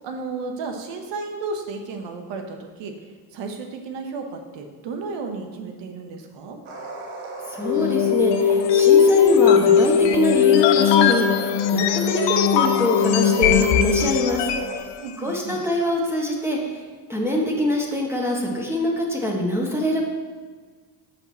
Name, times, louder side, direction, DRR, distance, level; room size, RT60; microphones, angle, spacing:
voice 1, 0.0-2.9 3.3-6.6 15.0-15.6, right 4 dB, 65° right, 4 dB, 1.1 m, -33 dB
sound 1, 6.7-14.8, right 1 dB, 80° right, 1.3 m, -36 dB
voice 2, 7.5-14.4 15.2-16.8 17.1-20.1, left 1 dB, 5° right, -2 dB, 1.5 m, -24 dB
sound 2, 7.6-14.8, left 8 dB, 60° left, 0.7 m, -18 dB
5.9 x 5.6 x 4.2 m, 1.5 s
hypercardioid pair, 60°, 48 cm